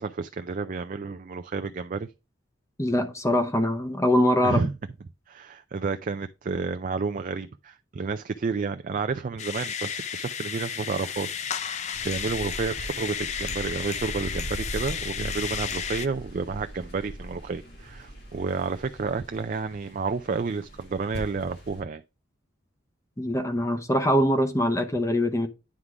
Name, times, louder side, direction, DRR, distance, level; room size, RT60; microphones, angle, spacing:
voice 1, 0.0-2.1 4.4-4.7 5.3-11.8 12.0-22.0, right 4 dB, 40° right, 0.4 m, -30 dB
voice 2, 2.8-4.6 23.2-25.5, left 1 dB, 15° left, 0.8 m, -23 dB
sound 1, 9.4-16.1, left 7 dB, 35° left, 0.4 m, -33 dB
sound 2, 11.9-21.8, equal, 55° left, 3.1 m, -40 dB
9.6 x 3.7 x 4.7 m
head